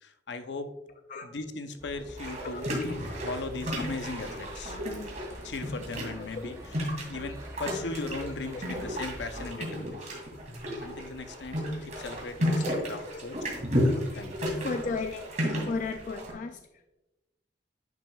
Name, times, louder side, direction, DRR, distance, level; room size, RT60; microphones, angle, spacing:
voice 1, 0.0-0.7 1.2-2.7 3.2-4.8 5.4-6.5 7.1-10.0 10.8-13.4 14.2-14.4, left 3 dB, 70° left, 8 dB, 0.7 m, -38 dB
sound 1, 1.8-9.5, equal, 15° right, 1.0 m, -46 dB
sound 2, 2.2-16.3, equal, 45° right, 2.4 m, -33 dB
voice 2, 2.4-3.0 4.5-4.6 6.2-6.6 8.2-8.7 12.6-13.2 14.6-15.2 15.6-16.9, left 4 dB, 45° left, 7 dB, 0.4 m, -36 dB
10.5 x 6.0 x 2.3 m, 1.0 s
head